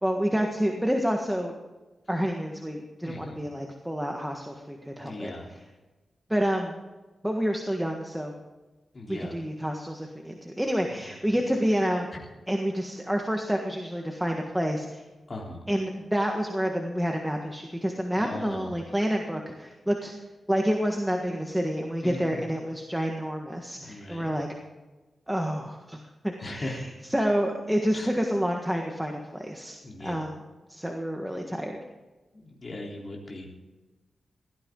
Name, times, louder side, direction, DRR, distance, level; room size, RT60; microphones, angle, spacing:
voice 1, 0.0-1.5 2.1-5.6 6.3-6.8 7.2-8.3 9.1-12.1 12.5-15.0 15.7-20.1 20.5-24.5 25.3-26.0 26.2-30.4 30.7-31.8, equal, 5° right, 2 dB, 1.6 m, -28 dB
voice 2, 3.0-3.4 5.0-5.5 8.9-9.4 15.3-15.6 18.2-18.7 22.0-22.4 23.8-24.3 26.4-26.8 27.9-28.1 29.8-30.3 32.3-33.5, left 2 dB, 35° left, -2 dB, 3.6 m, -38 dB
17.5 x 13.5 x 3.9 m, 1.2 s
wide cardioid pair, 110°, 0 cm